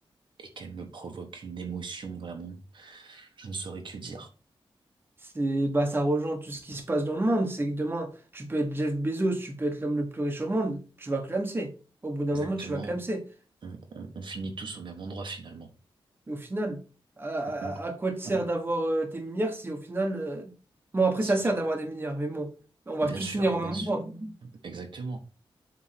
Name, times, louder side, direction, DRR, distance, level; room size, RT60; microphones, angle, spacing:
voice 1, 0.4-4.3 12.3-13.0 13.6-15.7 17.6-17.7 18.2-18.4 21.2-21.3 23.0-23.9 24.4-25.2, right 4 dB, 60° right, 1.3 m, -39 dB
voice 2, 5.2-11.7 12.0-13.2 16.3-16.8 17.2-20.5 20.9-22.5 22.9-24.3, right 2 dB, 25° right, 1.4 m, -29 dB
7.8 x 3.7 x 5.8 m
wide cardioid pair, 165°, 9 cm